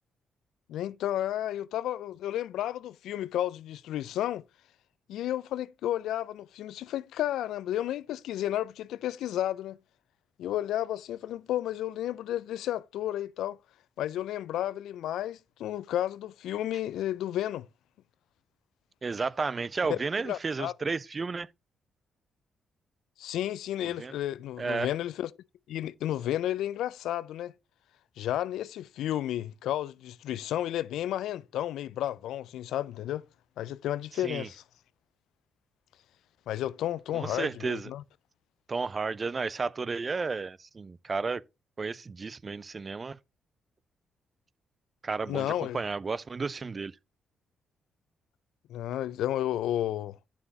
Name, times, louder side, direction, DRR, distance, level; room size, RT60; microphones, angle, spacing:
voice 1, 0.7-4.4 5.1-9.8 10.4-13.6 14.0-17.7 19.9-20.0 20.2-20.7 23.2-25.3 25.7-27.5 28.2-33.3 33.6-34.6 36.5-38.0 45.3-45.8 48.7-50.2, left 12 dB, 75° left, 0.3 m, -32 dB
voice 2, 19.0-21.5 23.8-24.1 24.6-24.9 34.2-34.5 37.1-37.9 38.7-41.4 41.8-43.2 45.0-46.9, right 4 dB, 40° right, 0.4 m, -32 dB
8.9 x 7.0 x 2.8 m
supercardioid pair, 55°, 0 cm